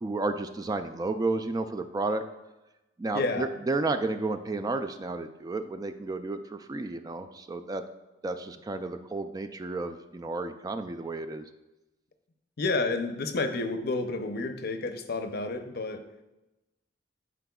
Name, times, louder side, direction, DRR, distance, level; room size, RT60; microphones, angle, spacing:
voice 1, 0.0-2.2 3.0-7.8 8.2-11.4, right 3 dB, 20° right, 8 dB, 0.3 m, -32 dB
voice 2, 12.6-16.1, left 3 dB, 55° left, 7 dB, 0.6 m, -30 dB
11.5 x 4.9 x 2.3 m, 1.0 s
head